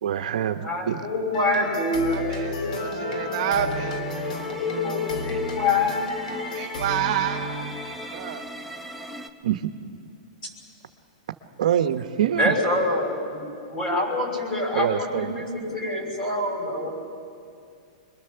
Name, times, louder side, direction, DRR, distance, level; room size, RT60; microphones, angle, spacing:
voice 1, 0.0-1.0 9.4-9.6 11.6-12.6 14.7-15.4, right 10 dB, 70° right, 8 dB, 1.0 m, -25 dB
voice 2, 0.6-3.7 4.3-6.0 12.3-16.9, left 2 dB, 20° left, 0 dB, 5.9 m, -26 dB
sound 1, 1.3-8.2, left 2 dB, 75° left, 3.2 m, -34 dB
voice 3, 2.1-4.0 6.4-7.7 7.9-8.5, right 10 dB, 45° right, 3 dB, 1.2 m, -29 dB
sound 2, 2.7-9.3, left 1 dB, ahead, 0.8 m, -37 dB
26.5 x 22.0 x 6.9 m, 2.3 s
hypercardioid pair, 160°, 4 cm